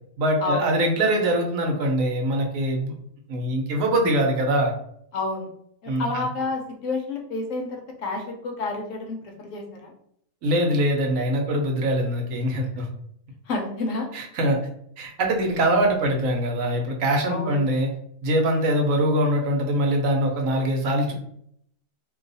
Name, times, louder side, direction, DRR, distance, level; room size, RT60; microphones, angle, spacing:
voice 1, 0.2-2.9 3.3-4.7 5.9-6.3 10.4-12.9 14.1-14.6 15.0-17.9 18.2-21.1, right 1 dB, 70° right, 2 dB, 1.0 m, -23 dB
voice 2, 5.1-5.5 5.8-9.9 13.5-14.1 17.2-17.6, left 3 dB, 70° left, 2 dB, 1.0 m, -29 dB
2.6 x 2.3 x 3.9 m, 0.69 s
omnidirectional pair, 1.5 m